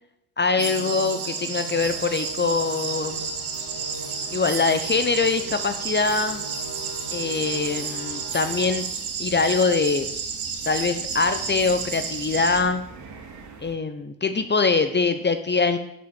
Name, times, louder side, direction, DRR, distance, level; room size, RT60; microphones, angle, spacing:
voice 1, 0.4-3.3 4.3-6.4 7.1-8.9 9.2-10.2 10.6-12.8 13.6-15.8, left 4 dB, 20° left, 9 dB, 0.9 m, -23 dB
sound 1, 0.6-12.6, right 5 dB, 55° right, 2.5 m, -32 dB
Musical instrument, 0.6-9.0, right 2 dB, 90° right, 2.2 m, -40 dB
sound 2, 1.8-13.8, right 4 dB, 35° right, 2.6 m, -46 dB
11.0 x 5.4 x 7.1 m, 0.80 s
hypercardioid pair, 65°, 47 cm